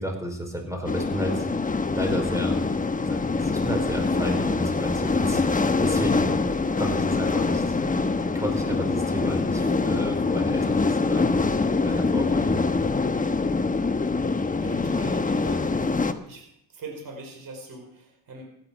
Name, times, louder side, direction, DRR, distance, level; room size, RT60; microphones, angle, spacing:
voice 1, 0.0-1.5 1.9-2.7 3.0-6.4 6.7-7.7 8.3-11.4 11.8-12.6, equal, 10° right, 3 dB, 4.8 m, -32 dB
sound 1, 0.9-16.1, left 3 dB, 20° left, 1.1 m, -24 dB
voice 2, 14.6-16.4 16.7-18.4, right 2 dB, 55° right, 2 dB, 4.8 m, -42 dB
16.0 x 10.0 x 6.2 m, 0.76 s
cardioid pair, 75°, 39 cm